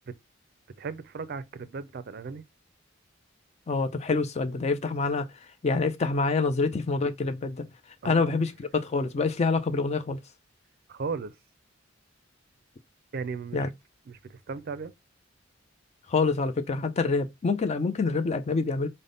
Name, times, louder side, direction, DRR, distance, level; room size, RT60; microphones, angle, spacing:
voice 1, 0.8-2.4 8.0-8.4 10.9-11.4 13.1-13.7 14.1-14.9, right 5 dB, 50° right, 0.4 m, -36 dB
voice 2, 3.7-5.3 5.6-7.7 8.0-10.2 13.5-13.7 16.1-18.9, left 4 dB, 35° left, 0.4 m, -26 dB
3.5 x 2.1 x 3.8 m
head